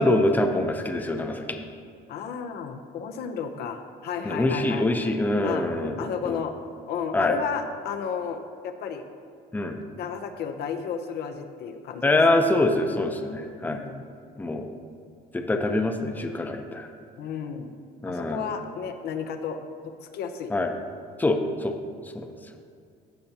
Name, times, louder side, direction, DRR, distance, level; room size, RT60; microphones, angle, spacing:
voice 1, 0.0-1.7 4.2-6.4 7.1-7.4 9.5-9.8 12.0-13.8 14.4-14.7 15.3-16.9 18.0-18.4 20.5-20.7 21.2-21.8 22.1-22.3, left 2 dB, 10° left, 4 dB, 0.7 m, -24 dB
voice 2, 2.1-4.9 5.4-5.7 6.0-6.5 6.9-9.0 9.7-12.4 13.7-14.0 17.2-17.7 18.1-19.6 20.0-20.5 21.3-21.4, left 7 dB, 70° left, 7 dB, 0.7 m, -33 dB
15.5 x 5.7 x 2.8 m, 2.4 s
cardioid pair, 110°, 17 cm